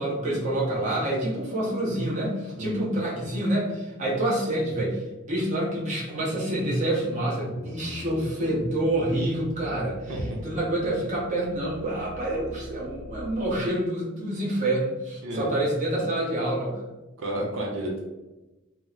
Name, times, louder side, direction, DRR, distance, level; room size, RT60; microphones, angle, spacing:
voice 1, 0.0-10.1 10.4-16.8, right 1 dB, 35° right, -6 dB, 0.9 m, -27 dB
sound 1, 6.6-13.6, left 2 dB, 60° left, 0.3 m, -43 dB
voice 2, 17.2-18.0, right 1 dB, 80° right, -2 dB, 0.7 m, -31 dB
2.9 x 2.0 x 3.9 m, 1.1 s
head